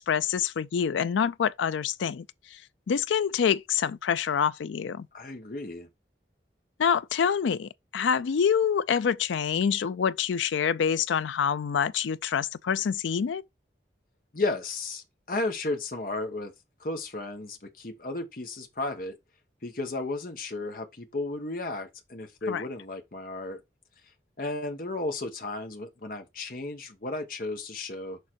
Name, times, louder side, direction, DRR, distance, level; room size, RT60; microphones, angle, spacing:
voice 1, 0.0-2.3 2.5-2.6 2.9-5.1 6.8-13.4 22.5-22.6, left 7 dB, 85° left, 0.4 m, -26 dB
voice 2, 5.1-5.9 14.3-16.5 16.8-19.2 19.6-23.6 24.4-28.2, left 2 dB, 50° left, 1.1 m, -34 dB
6.6 x 3.7 x 4.4 m
head